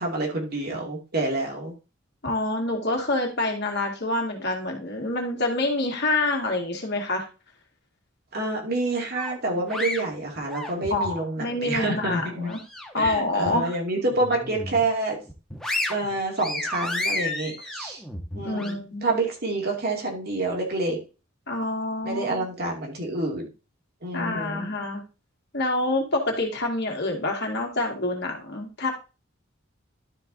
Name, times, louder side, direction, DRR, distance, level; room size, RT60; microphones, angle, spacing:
voice 1, 0.0-1.7 8.3-12.5 12.9-15.2 15.9-18.0 18.4-21.0 22.0-23.5 24.0-24.7, right 2 dB, 50° right, 0 dB, 2.5 m, -28 dB
voice 2, 2.2-7.3 10.9-12.6 12.9-13.7 18.4-19.1 21.5-22.5 24.1-25.0 25.5-28.9, left 2 dB, 55° left, 1 dB, 2.2 m, -27 dB
sound 1, 9.2-11.2 11.6-13.1 13.5-13.6 14.1-14.9 15.3-18.7, left 2 dB, 5° left, 1.3 m, -32 dB
12.0 x 4.6 x 4.0 m, 0.32 s
head